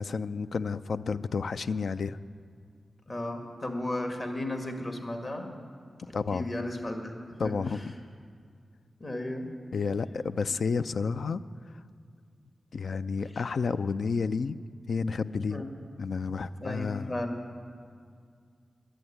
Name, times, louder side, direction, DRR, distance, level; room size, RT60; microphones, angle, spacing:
voice 1, 0.0-2.2 6.1-6.5 7.4-7.8 9.7-11.4 12.7-14.6 14.9-15.6 16.0-17.1, left 5 dB, 75° left, 13 dB, 0.3 m, -30 dB
voice 2, 3.1-5.5 6.1-7.8 9.0-9.5 15.5-15.7 16.6-17.4, left 1 dB, 40° left, 4 dB, 1.8 m, -35 dB
11.0 x 7.9 x 9.9 m, 2.1 s
cardioid pair, 55°, 0 cm